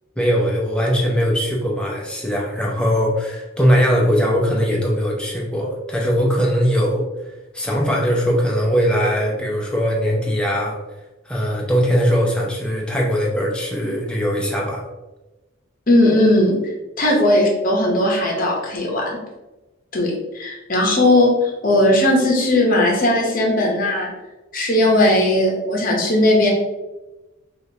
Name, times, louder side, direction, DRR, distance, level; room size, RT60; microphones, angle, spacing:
voice 1, 0.2-7.1 7.5-10.8 11.3-14.8, equal, 5° left, -2 dB, 0.6 m, -20 dB
voice 2, 15.9-16.6 17.0-19.2 19.9-24.1 24.5-26.5, left 1 dB, 40° left, -1 dB, 0.8 m, -17 dB
4.8 x 2.5 x 2.8 m, 1.1 s
head